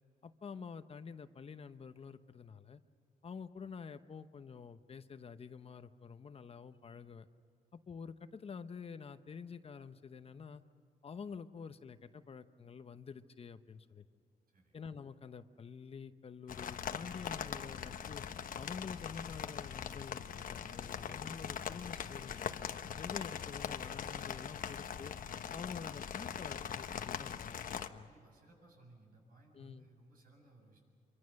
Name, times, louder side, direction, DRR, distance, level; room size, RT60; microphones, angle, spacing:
voice 1, 0.2-2.8 3.2-7.3 7.7-10.6 11.0-14.0 14.7-18.2 18.5-22.6 23.0-25.1 25.5-28.1 29.5-29.9, left 6 dB, 40° left, 10 dB, 0.9 m, -48 dB
sound 1, 16.5-27.9, left 8 dB, 65° left, 1.0 m, -41 dB
voice 2, 28.0-30.8, right 2 dB, 70° right, 1 dB, 7.7 m, -62 dB
27.0 x 24.0 x 6.5 m, 2.3 s
cardioid pair, 115°, 15 cm